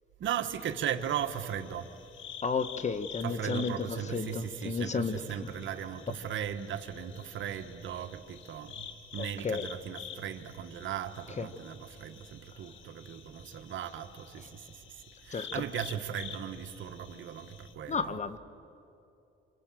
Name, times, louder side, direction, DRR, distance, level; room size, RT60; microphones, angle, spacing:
voice 1, 0.2-1.9 3.2-8.9 9.1-14.7 15.2-18.2, right 9 dB, 75° right, 1.6 m, -37 dB
sound 1, 0.6-17.7, left 8 dB, 80° left, 1.8 m, -49 dB
voice 2, 2.4-5.2 9.2-9.6 11.4-11.5 15.3-15.6 17.9-18.4, left 5 dB, 35° left, 1.3 m, -32 dB
27.0 x 26.5 x 7.7 m
cardioid pair, 90°, 20 cm